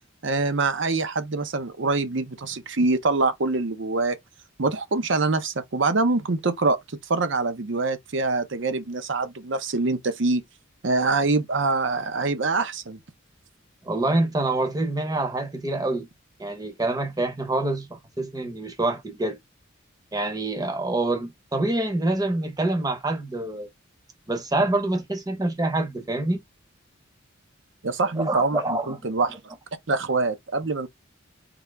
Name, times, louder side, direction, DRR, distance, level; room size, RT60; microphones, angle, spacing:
voice 1, 0.2-4.2 4.6-6.8 7.1-10.4 10.8-13.0 27.8-29.4 29.9-30.9, right 3 dB, 60° right, 0.7 m, -24 dB
voice 2, 13.8-16.1 16.4-19.4 20.1-23.7 24.3-26.4 28.2-29.0, right 2 dB, 20° right, 0.8 m, -26 dB
3.8 x 2.8 x 3.4 m
head